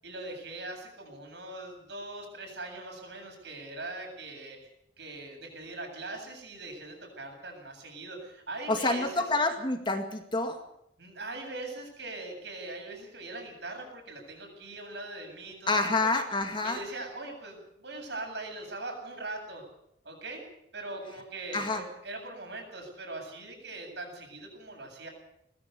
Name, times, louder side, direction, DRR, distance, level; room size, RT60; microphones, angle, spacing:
voice 1, 0.0-4.7 5.0-9.2 11.0-16.1 16.6-19.6 20.0-20.4 20.7-25.1, right 2 dB, 65° right, 2 dB, 8.0 m, -41 dB
voice 2, 8.7-10.6 15.7-16.8 21.5-21.8, left 2 dB, 25° left, 5 dB, 2.1 m, -28 dB
20.5 x 15.0 x 8.3 m, 0.76 s
head